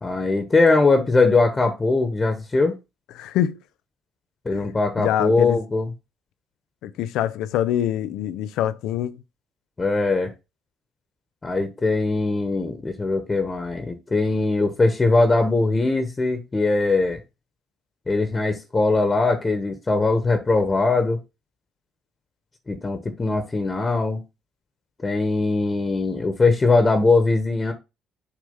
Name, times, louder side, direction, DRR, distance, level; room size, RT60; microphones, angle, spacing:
voice 1, 0.0-2.7 4.4-5.9 9.8-10.3 11.4-17.2 18.1-21.2 22.7-24.2 25.0-27.7, left 3 dB, 30° left, 1.3 m, -21 dB
voice 2, 3.2-3.6 4.5-4.7 5.0-5.6 6.8-9.2, left 11 dB, 80° left, 0.5 m, -25 dB
6.6 x 3.3 x 5.4 m
supercardioid pair, 65°, 0 cm